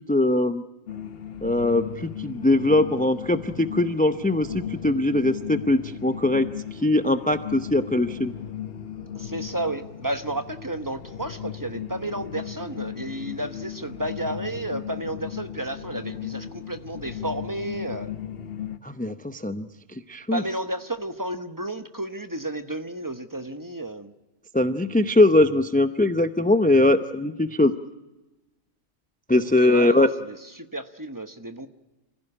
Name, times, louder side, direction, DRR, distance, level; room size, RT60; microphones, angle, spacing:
voice 1, 0.1-0.6 1.4-6.5 6.7-8.3 18.8-19.7 20.1-20.4 24.5-27.7 29.3-30.1, left 2 dB, 10° left, 10 dB, 0.4 m, -21 dB
sound 1, 0.9-18.8, left 9 dB, 50° left, 1.2 m, -36 dB
voice 2, 9.1-18.1 20.3-24.1 29.6-31.7, right 1 dB, 15° right, 9 dB, 1.0 m, -32 dB
27.0 x 15.5 x 9.9 m, 1.1 s
omnidirectional pair, 1.3 m